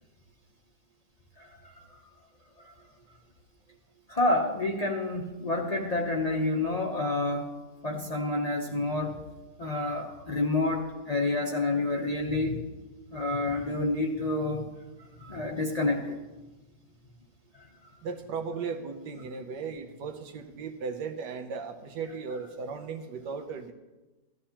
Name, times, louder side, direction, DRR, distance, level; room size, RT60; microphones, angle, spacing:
voice 1, 1.4-1.8 2.6-2.7 4.1-7.5 7.8-9.2 9.6-12.6 13.1-14.7 15.2-16.2, left 2 dB, 40° left, 1 dB, 0.6 m, -29 dB
voice 2, 18.0-23.7, right 5 dB, 85° right, 6 dB, 1.4 m, -36 dB
15.0 x 12.0 x 2.9 m, 1.2 s
omnidirectional pair, 1.8 m